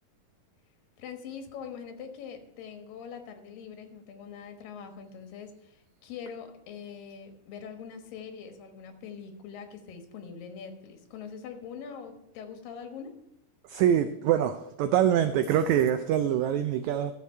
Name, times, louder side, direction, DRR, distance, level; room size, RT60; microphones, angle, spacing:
voice 1, 1.0-13.2, left 6 dB, 85° left, 5 dB, 3.0 m, -43 dB
voice 2, 13.7-17.1, right 10 dB, 90° right, 10 dB, 1.6 m, -24 dB
13.0 x 7.2 x 4.3 m, 0.86 s
omnidirectional pair, 3.9 m